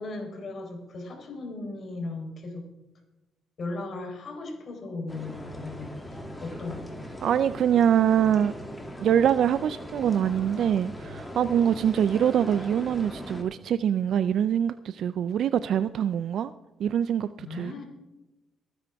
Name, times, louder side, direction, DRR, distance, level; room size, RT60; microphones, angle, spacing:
voice 1, 0.0-2.6 3.6-6.9 17.4-17.9, left 2 dB, 55° left, 3.9 m, -37 dB
sound 1, 5.1-13.4, equal, 10° left, 2.4 m, -40 dB
voice 2, 7.2-8.5 9.0-16.5 16.8-17.9, right 9 dB, 70° right, 0.4 m, -24 dB
22.5 x 9.9 x 3.5 m
cardioid pair, 90°, 0 cm